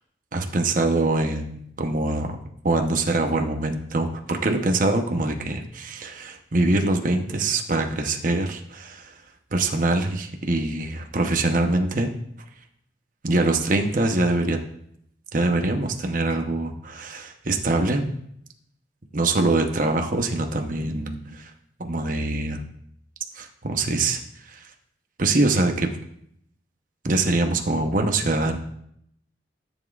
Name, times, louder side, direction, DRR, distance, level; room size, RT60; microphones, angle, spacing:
voice 1, 0.3-2.4 2.6-9.1 9.5-12.1 13.2-14.6 15.3-18.1 19.1-21.5 21.8-22.6 23.3-24.7 25.2-25.9 27.0-28.6, right 2 dB, 45° right, 4 dB, 0.9 m, -24 dB
14.0 x 7.3 x 2.4 m, 0.71 s
head